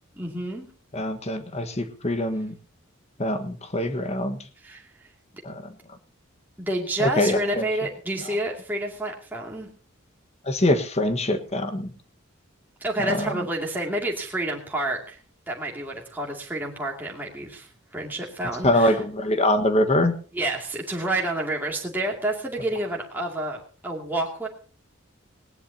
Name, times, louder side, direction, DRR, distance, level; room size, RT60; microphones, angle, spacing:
voice 1, 0.2-0.7 4.6-5.1 6.6-9.7 12.8-15.2 15.5-19.0 20.3-24.5, right 1 dB, 10° right, -2 dB, 2.5 m, -29 dB
voice 2, 0.9-2.5 3.2-4.4 5.4-5.6 7.0-7.7 10.4-11.9 13.0-13.4 18.6-20.1, left 1 dB, 30° left, 8 dB, 1.5 m, -24 dB
19.5 x 18.0 x 2.9 m, 0.39 s
head